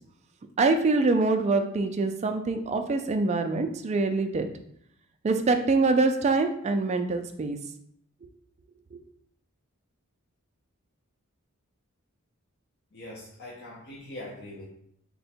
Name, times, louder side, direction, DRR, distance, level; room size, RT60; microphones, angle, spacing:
voice 1, 0.6-4.5 5.2-7.6 8.9-9.0, right 3 dB, 30° right, 7 dB, 0.3 m, -24 dB
voice 2, 12.9-14.7, left 1 dB, 50° left, -4 dB, 0.6 m, -42 dB
3.6 x 2.2 x 4.2 m, 0.70 s
head